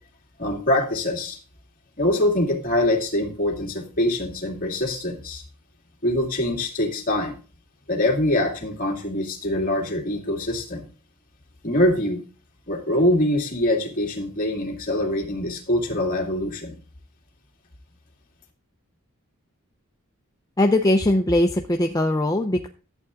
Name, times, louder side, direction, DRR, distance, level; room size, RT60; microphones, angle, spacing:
voice 1, 0.4-1.4 2.0-5.4 6.0-7.3 7.9-10.9 11.6-12.2 12.7-16.8, left 1 dB, 40° left, 1 dB, 2.5 m, -24 dB
voice 2, 20.6-22.7, left 1 dB, 15° left, 3 dB, 0.6 m, -20 dB
11.5 x 8.0 x 3.7 m, 0.37 s
head